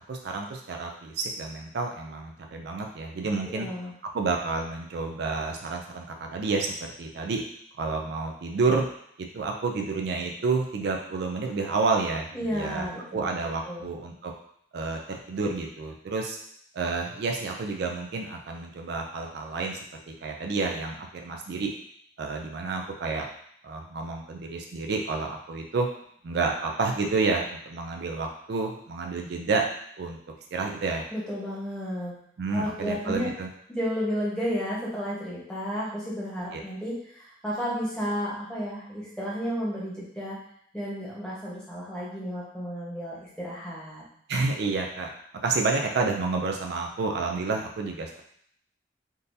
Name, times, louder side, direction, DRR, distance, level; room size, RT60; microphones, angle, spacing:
voice 1, 0.1-3.7 4.1-6.7 7.0-7.4 7.8-8.8 9.3-12.9 13.1-14.3 14.7-16.4 16.7-19.8 20.2-21.7 22.2-23.3 23.6-25.9 26.2-29.6 30.0-30.2 30.5-31.0 32.4-33.5 36.5-36.6 44.3-45.1 45.4-48.2, right 4 dB, 60° right, 2 dB, 0.4 m, -29 dB
voice 2, 3.5-3.9 12.3-13.9 31.1-32.1 32.5-33.3 33.7-40.4 40.7-44.0, equal, 5° left, -7 dB, 1.0 m, -32 dB
3.7 x 2.6 x 2.6 m, 0.67 s
head